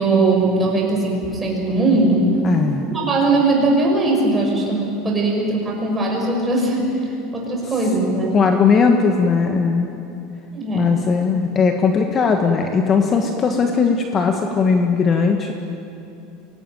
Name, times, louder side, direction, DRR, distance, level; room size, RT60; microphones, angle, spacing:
voice 1, 0.0-2.3 2.9-7.0 7.3-8.4 10.5-11.1, right 2 dB, 15° right, -1 dB, 5.6 m, -19 dB
voice 2, 2.4-2.8 8.3-9.9 10.7-15.5, left 5 dB, 25° left, 4 dB, 1.4 m, -18 dB
24.0 x 18.0 x 9.2 m, 2.7 s
supercardioid pair, 150°, 0 cm